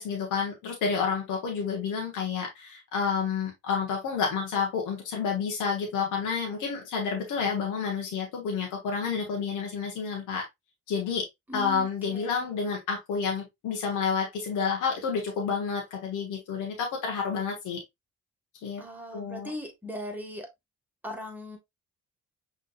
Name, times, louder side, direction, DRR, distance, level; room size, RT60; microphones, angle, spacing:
voice 1, 0.0-10.4 10.9-11.3 11.5-17.8 18.6-18.8 19.1-19.5, left 6 dB, 85° left, 1.5 m, -30 dB
voice 2, 11.5-12.5 18.8-20.5 21.0-21.6, left 1 dB, 5° right, 1.7 m, -39 dB
5.7 x 3.6 x 2.4 m
cardioid pair, 90°, 30 cm